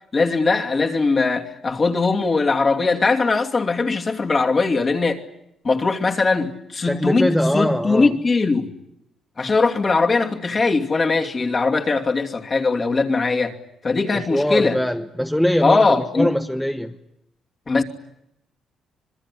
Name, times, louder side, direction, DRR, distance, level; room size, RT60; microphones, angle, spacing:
voice 1, 0.1-5.2 5.6-8.7 9.4-13.5 13.8-14.8 15.6-16.3 17.7-17.8, left 3 dB, 35° left, 2.7 m, -20 dB
voice 2, 6.9-8.1 14.1-16.9, equal, 5° left, 1.1 m, -22 dB
26.0 x 21.5 x 9.8 m
cardioid pair, 90°, 0 cm